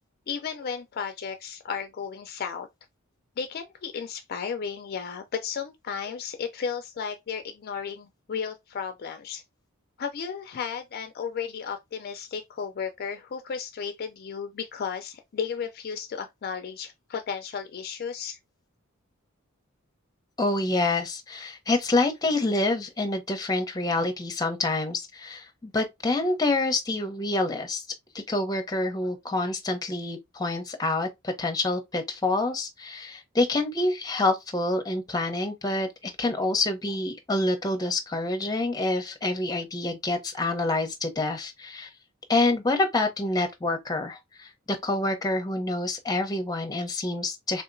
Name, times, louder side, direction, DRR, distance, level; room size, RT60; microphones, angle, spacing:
voice 1, 0.3-2.7 3.4-9.4 10.0-18.4, left 6 dB, 50° left, 0.4 m, -34 dB
voice 2, 20.4-27.8 28.1-41.9 42.3-47.6, left 2 dB, 20° left, 0.7 m, -27 dB
3.7 x 2.8 x 2.5 m
head